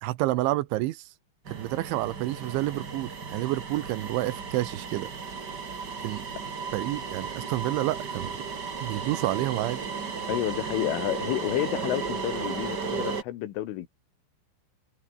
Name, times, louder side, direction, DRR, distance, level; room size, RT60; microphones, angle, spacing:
voice 1, 0.0-1.0 1.5-5.1 6.0-6.2 6.7-8.4 8.8-9.8, right 17 dB, 80° right, 3.3 m, -29 dB
sound 1, 1.4-13.2, right 5 dB, 35° right, 1.7 m, -35 dB
voice 2, 10.3-13.9, left 13 dB, 90° left, 4.2 m, -30 dB
omnidirectional pair, 5.5 m